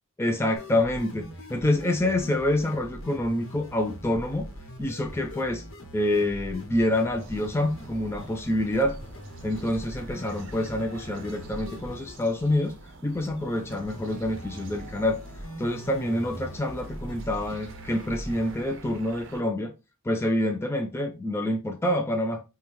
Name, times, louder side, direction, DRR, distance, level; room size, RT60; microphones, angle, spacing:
voice 1, 0.2-4.5 4.8-5.6 5.9-9.0 9.4-12.7 13.0-15.2 15.6-19.7 20.0-22.4, left 1 dB, 10° left, 0.3 m, -27 dB
sound 1, 0.5-18.6, equal, 75° left, 1.0 m, -42 dB
sound 2, 7.2-19.4, right 3 dB, 60° right, 0.6 m, -48 dB
5.2 x 2.2 x 2.9 m
head